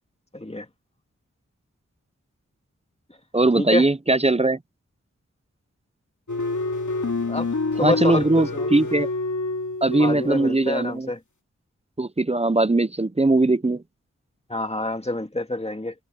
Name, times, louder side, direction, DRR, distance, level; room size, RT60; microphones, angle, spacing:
voice 1, 0.3-0.7 3.6-3.9 7.3-7.5 7.8-8.7 10.0-11.2 14.5-15.9, left 1 dB, 20° left, 2.1 m, -27 dB
voice 2, 3.3-4.6 7.8-9.1 9.8-11.1 12.0-13.8, right 2 dB, 20° right, 0.6 m, -20 dB
sound 1, 6.3-10.9, left 3 dB, 75° left, 2.4 m, -28 dB
wide cardioid pair, 55°, 30 cm